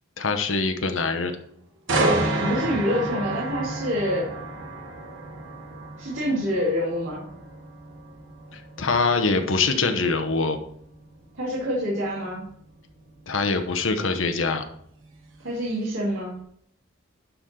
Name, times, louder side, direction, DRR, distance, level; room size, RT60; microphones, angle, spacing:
voice 1, 0.2-1.3 8.5-10.6 13.3-14.6, left 4 dB, 75° left, 7 dB, 1.0 m, -24 dB
sound 1, 1.9-15.7 16.1-16.4, right 2 dB, 70° right, 1.1 m, -31 dB
voice 2, 2.4-4.3 6.0-7.2 11.3-12.4 15.4-16.3, equal, 85° right, -5 dB, 2.3 m, -26 dB
11.5 x 3.9 x 4.3 m, 0.67 s
head